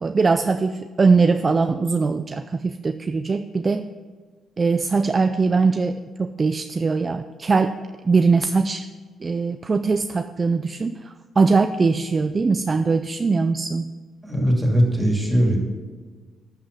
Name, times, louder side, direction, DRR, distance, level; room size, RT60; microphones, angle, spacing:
voice 1, 0.0-3.9 4.6-7.8 8.0-8.9 9.2-13.9, right 4 dB, 30° right, 9 dB, 0.4 m, -21 dB
voice 2, 14.3-15.6, equal, 5° right, 0 dB, 2.6 m, -19 dB
12.0 x 5.7 x 6.9 m, 1.5 s
cardioid pair, 90°, 0 cm